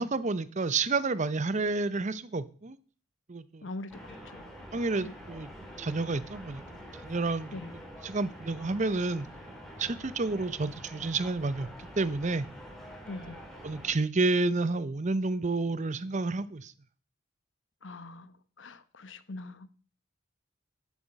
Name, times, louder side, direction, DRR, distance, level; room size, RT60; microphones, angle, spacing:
voice 1, 0.0-2.8 3.3-3.7 4.7-5.5 5.8-7.6 8.0-9.3 9.8-12.5 13.6-16.7, right 3 dB, 40° right, 0.7 m, -30 dB
voice 2, 3.6-4.5 5.0-5.1 7.5-7.7 13.1-13.4 17.8-18.3 18.6-19.8, left 2 dB, 75° left, 1.0 m, -42 dB
sound 1, 3.9-13.9, equal, ahead, 2.8 m, -46 dB
11.5 x 8.4 x 5.3 m
head